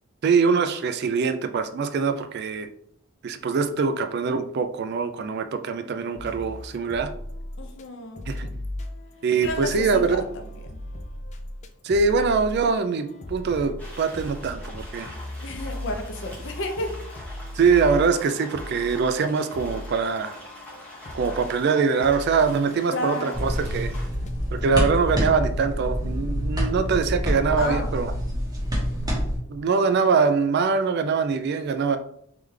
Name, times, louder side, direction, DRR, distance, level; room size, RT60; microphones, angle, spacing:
voice 1, 0.2-2.7 3.2-7.1 8.3-8.5 9.2-10.2 11.8-15.1 17.5-20.4 21.1-23.9 24.5-28.1 29.5-32.0, right 5 dB, 50° right, 9 dB, 0.3 m, -23 dB
sound 1, 6.2-7.9 8.2-24.9, left 1 dB, 35° left, 0.4 m, -38 dB
voice 2, 7.6-8.3 9.4-10.2 15.4-17.0 22.9-23.4 27.6-27.9, left 2 dB, 55° left, 4 dB, 0.7 m, -31 dB
sound 2, 13.8-24.1, left 1 dB, 5° left, 1.0 m, -44 dB
sound 3, 23.3-29.4, equal, 20° right, 1.2 m, -27 dB
3.6 x 3.3 x 3.2 m, 0.67 s
head